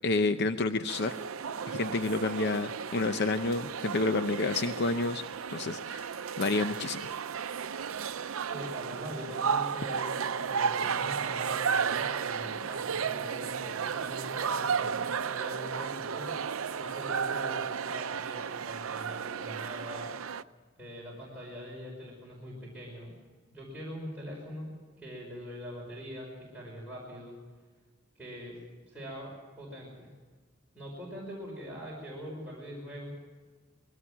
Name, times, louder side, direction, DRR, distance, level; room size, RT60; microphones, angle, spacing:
voice 1, 0.0-1.1 1.7-5.2 5.5-7.1, left 3 dB, 55° left, 9 dB, 0.7 m, -29 dB
sound 1, 0.9-20.4, right 6 dB, 85° right, 0.6 m, -33 dB
voice 2, 8.5-20.1 20.8-23.2 23.5-24.7 25.0-27.4 28.2-28.6 28.9-30.1 30.7-33.1, equal, 10° right, -5 dB, 5.3 m, -43 dB
21.0 x 17.5 x 7.4 m, 1.4 s
head